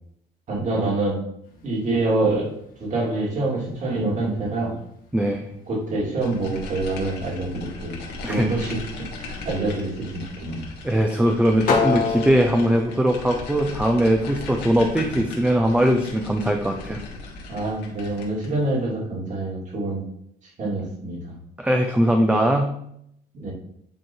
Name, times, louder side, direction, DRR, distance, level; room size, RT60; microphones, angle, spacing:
voice 1, 0.5-1.2 1.6-2.5 2.8-4.7 5.7-8.0 8.3-8.8 9.2-10.7 15.0-15.2 17.5-20.0 20.6-21.4 23.3-23.5, right 2 dB, 45° right, -3 dB, 2.6 m, -26 dB
sound 1, 1.4-18.8, left 5 dB, 55° left, 1.6 m, -35 dB
voice 2, 5.1-5.5 8.2-8.5 10.8-17.0 21.6-22.8, equal, 5° right, 3 dB, 0.6 m, -20 dB
sound 2, 6.2-18.6, left 2 dB, 80° left, 1.7 m, -37 dB
9.3 x 3.1 x 4.5 m, 0.73 s
cardioid pair, 110°, 17 cm